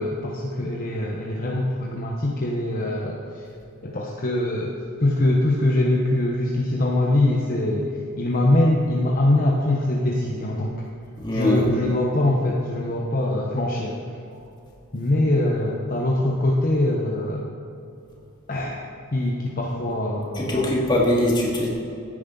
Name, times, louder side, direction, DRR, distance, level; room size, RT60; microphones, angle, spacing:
voice 1, 0.0-3.4 3.8-4.7 5.0-7.9 8.2-10.9 11.3-14.0 14.9-17.4 18.5-18.8 19.1-20.7, left 1 dB, 40° left, -2 dB, 1.1 m, -23 dB
voice 2, 11.2-11.7 20.3-21.7, left 1 dB, 20° left, -4 dB, 2.5 m, -21 dB
15.5 x 9.6 x 4.0 m, 2.7 s
head